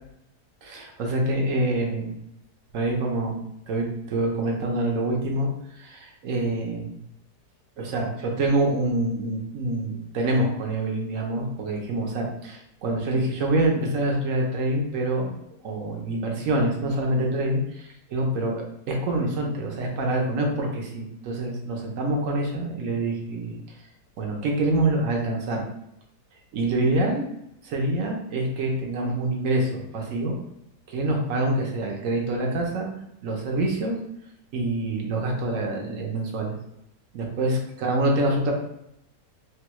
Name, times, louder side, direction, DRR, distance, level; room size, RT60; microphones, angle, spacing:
voice 1, 0.6-2.1 2.7-3.4 3.7-6.9 7.8-15.4 15.6-23.6 24.2-25.6 26.5-27.3 27.6-30.4 30.9-32.9 33.2-34.0 34.5-36.5 37.1-38.5, right 1 dB, 65° right, 0 dB, 0.9 m, -26 dB
3.4 x 2.2 x 2.9 m, 0.79 s
omnidirectional pair, 1.8 m